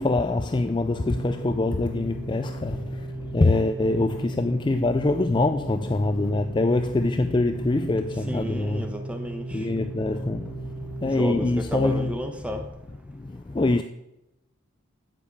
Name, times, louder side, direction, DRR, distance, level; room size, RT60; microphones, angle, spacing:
voice 1, 0.0-8.9 9.5-10.7 11.0-12.2 13.1-13.8, left 2 dB, 20° left, 0.3 m, -24 dB
Organ, 0.8-11.7, right 2 dB, 55° right, 1.4 m, -37 dB
voice 2, 8.3-9.6 11.0-12.6, equal, 5° right, 1.1 m, -32 dB
9.7 x 7.1 x 8.6 m
head